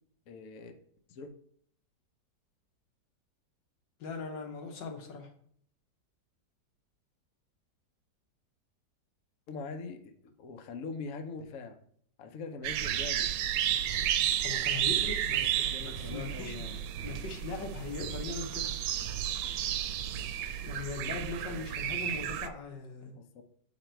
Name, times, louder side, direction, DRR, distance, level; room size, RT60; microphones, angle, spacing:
voice 1, 0.3-0.7 1.1-1.3 9.5-11.8 12.2-13.3 15.3-16.8 23.1-23.4, left 4 dB, 60° left, 7 dB, 1.0 m, -43 dB
voice 2, 4.0-5.3 14.4-16.7 17.0-18.7 20.6-23.1, left 4 dB, 85° left, 3 dB, 1.8 m, -40 dB
sound 1, 12.6-22.5, right 10 dB, 80° right, 1.2 m, -32 dB
7.6 x 4.0 x 4.4 m, 0.63 s
omnidirectional pair, 1.9 m